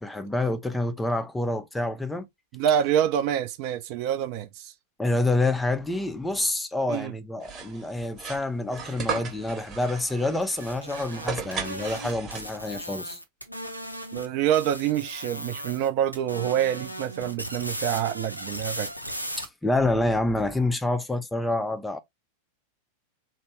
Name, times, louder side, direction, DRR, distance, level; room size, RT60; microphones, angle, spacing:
voice 1, 0.0-2.3 5.0-13.2 19.4-22.0, left 2 dB, 10° left, 0.4 m, -27 dB
voice 2, 2.5-4.7 6.9-7.1 14.1-18.9, right 10 dB, 45° right, 0.5 m, -26 dB
sound 1, 7.4-12.8, right 6 dB, 30° right, 0.9 m, -36 dB
sound 2, 10.4-14.3 14.5-15.9 16.1-19.4, equal, 90° left, 0.5 m, -37 dB
3.0 x 2.1 x 3.0 m
figure-of-eight pair, 90°, 0 cm